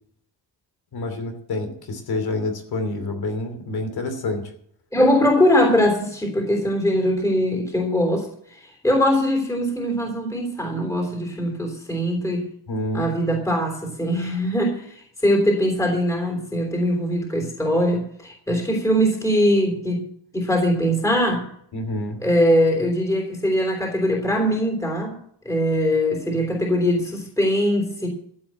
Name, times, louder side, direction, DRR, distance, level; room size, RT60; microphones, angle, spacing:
voice 1, 0.9-4.5 12.7-13.1 21.7-22.2, left 2 dB, 60° left, 6 dB, 2.9 m, -28 dB
voice 2, 4.9-12.5 12.9-20.1 20.3-21.5 22.2-25.2 25.4-28.1, equal, 5° left, 2 dB, 3.2 m, -21 dB
14.0 x 7.9 x 7.6 m, 0.64 s
wide cardioid pair, 155°, 41 cm